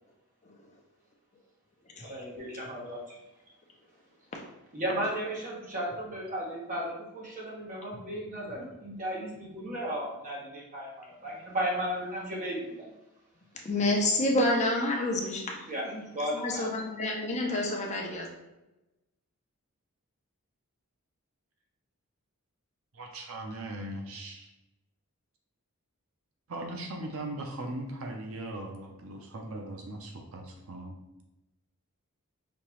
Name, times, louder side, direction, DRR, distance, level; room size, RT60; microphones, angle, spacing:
voice 1, 2.0-3.0 4.7-12.8 15.7-16.7, right 1 dB, 35° right, -5 dB, 1.4 m, -35 dB
voice 2, 13.5-16.0 16.3-18.3, left 1 dB, 30° left, 0 dB, 0.6 m, -29 dB
voice 3, 22.9-24.5 26.5-31.0, right 1 dB, 70° right, 2 dB, 0.6 m, -39 dB
5.2 x 2.8 x 3.1 m, 0.97 s
head